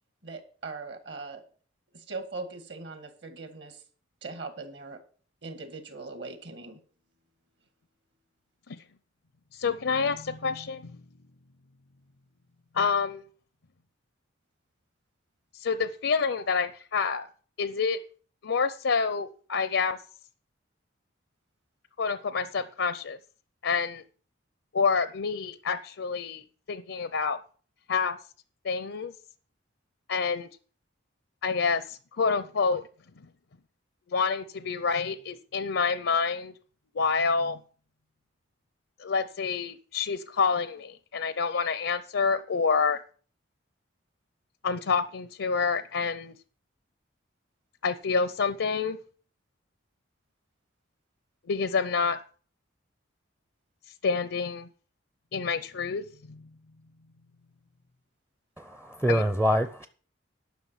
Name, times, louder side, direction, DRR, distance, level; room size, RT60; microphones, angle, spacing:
voice 1, 0.2-1.4 1.9-3.8 4.2-5.0 5.4-6.8, right 3 dB, 60° right, 8 dB, 1.8 m, -40 dB
voice 2, 9.6-10.9 12.7-13.2 15.6-17.3 17.6-18.0 18.4-20.0 22.0-23.2 23.6-24.0 24.7-26.4 26.7-27.4 27.9-28.2 28.6-29.1 30.1-30.5 31.4-32.8 34.1-36.5 37.0-37.6 39.0-43.0 44.6-46.3 47.8-49.0 51.5-52.2 54.0-54.7 55.3-56.4 59.1-59.2, left 5 dB, 80° left, 13 dB, 0.6 m, -27 dB
voice 3, 58.6-59.9, equal, 5° right, 10 dB, 0.5 m, -25 dB
11.5 x 6.0 x 7.3 m, 0.43 s
head